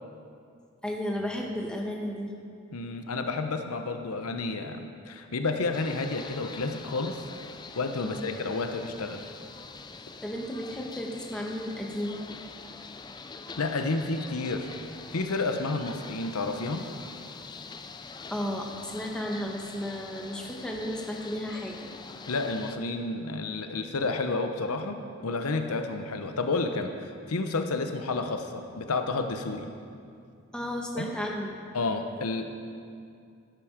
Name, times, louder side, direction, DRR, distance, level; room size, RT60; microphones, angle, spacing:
voice 1, 0.8-2.3 8.0-8.3 10.2-12.2 18.3-21.9 30.5-31.5, equal, 5° left, -1 dB, 1.1 m, -33 dB
voice 2, 2.7-7.2 7.8-9.3 13.6-14.7 15.1-16.8 22.3-25.0 25.2-29.7 31.0-31.1 31.7-32.5, left 3 dB, 85° left, 6 dB, 0.8 m, -30 dB
sound 1, 5.7-22.8, left 4 dB, 20° left, 0.4 m, -44 dB
12.0 x 9.2 x 5.1 m, 2.4 s
head